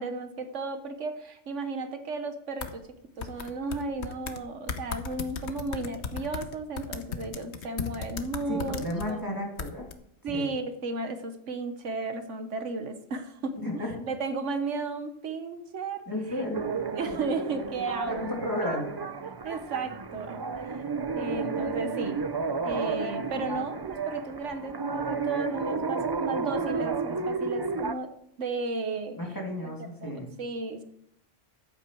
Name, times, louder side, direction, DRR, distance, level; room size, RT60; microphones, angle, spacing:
voice 1, 0.0-2.8 3.2-8.8 9.1-9.2 10.2-16.0 16.3-16.4 17.0-18.4 19.4-20.8 21.1-22.2 22.6-28.1 28.4-29.2 29.6-29.7 30.0-30.8, right 3 dB, 85° right, 8 dB, 1.5 m, -34 dB
sound 1, 2.6-2.7 3.2-4.4 4.7-9.1 9.6-9.9, left 6 dB, 65° left, 1.2 m, -36 dB
voice 2, 8.4-9.9 10.3-10.5 13.6-13.9 16.1-16.7 18.4-18.9 29.1-30.3, left 1 dB, 15° left, -1 dB, 2.8 m, -33 dB
sound 2, 16.5-27.9, right 4 dB, 35° right, 0.4 m, -32 dB
14.5 x 8.3 x 4.6 m, 0.74 s
omnidirectional pair, 1.2 m